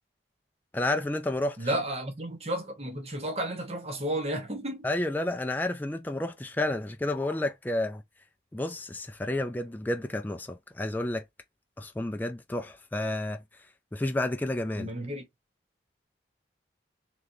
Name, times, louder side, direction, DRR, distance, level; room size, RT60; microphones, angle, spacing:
voice 1, 0.7-1.7 4.8-8.0 8.5-11.2 11.8-13.4 13.9-14.9, left 1 dB, 10° left, 0.3 m, -30 dB
voice 2, 1.6-4.8 14.8-15.2, right 1 dB, 35° right, 1.2 m, -32 dB
4.0 x 3.2 x 2.7 m
head